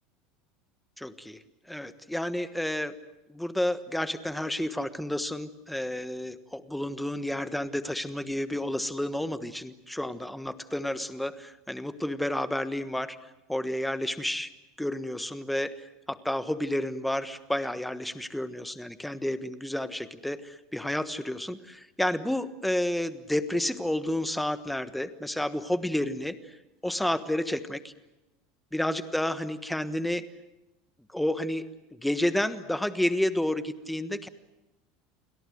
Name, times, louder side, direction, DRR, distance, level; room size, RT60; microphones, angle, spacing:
voice 1, 1.0-1.4 1.7-2.9 3.3-13.2 13.5-14.5 14.8-15.7 16.1-26.6 26.8-27.9 28.7-30.2 31.1-31.6 31.9-34.3, left 1 dB, ahead, 12 dB, 1.3 m, -30 dB
30.0 x 22.0 x 7.9 m, 0.95 s
supercardioid pair, 155°, 2 cm